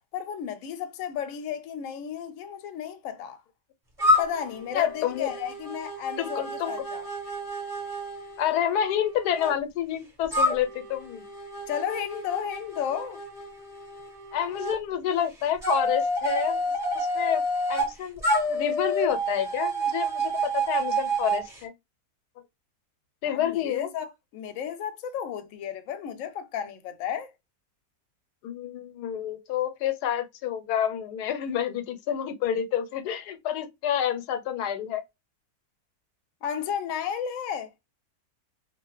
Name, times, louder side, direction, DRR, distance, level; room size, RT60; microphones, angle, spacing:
voice 1, 0.1-3.4 4.2-7.1 11.7-13.2 23.2-27.3 36.4-37.7, left 8 dB, 65° left, 0.9 m, -33 dB
sound 1, 4.0-9.5 10.3-14.7 15.6-17.9 18.2-21.4, equal, 15° right, 1.0 m, -29 dB
voice 2, 4.7-5.3 6.2-6.7 8.4-11.2 14.3-16.6 16.9-17.4 17.7-18.2 18.5-21.7 23.2-23.9 28.4-35.0, left 10 dB, 85° left, 1.1 m, -28 dB
2.7 x 2.4 x 3.0 m
omnidirectional pair, 1.7 m